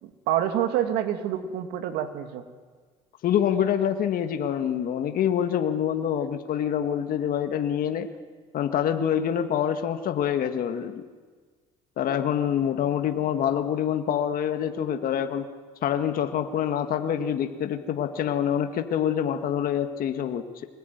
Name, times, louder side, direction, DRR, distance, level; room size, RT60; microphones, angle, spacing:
voice 1, 0.0-2.4, right 10 dB, 80° right, 7 dB, 2.4 m, -27 dB
voice 2, 3.2-8.1 8.5-11.0 12.0-15.5 15.8-20.7, left 9 dB, 60° left, 7 dB, 1.7 m, -26 dB
24.5 x 20.0 x 9.4 m, 1.5 s
supercardioid pair, 75°, 17 cm